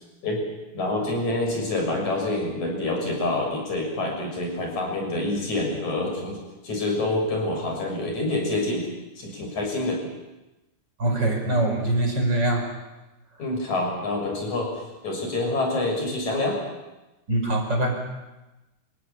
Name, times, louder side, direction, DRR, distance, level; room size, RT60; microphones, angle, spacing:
voice 1, 0.7-8.9 9.2-10.0 13.4-14.7 15.0-16.6, left 2 dB, 40° left, 1 dB, 8.0 m, -27 dB
voice 2, 11.0-12.7 17.3-18.0, right 1 dB, 25° right, 3 dB, 5.5 m, -23 dB
28.5 x 16.5 x 10.0 m, 1.0 s
omnidirectional pair, 5.0 m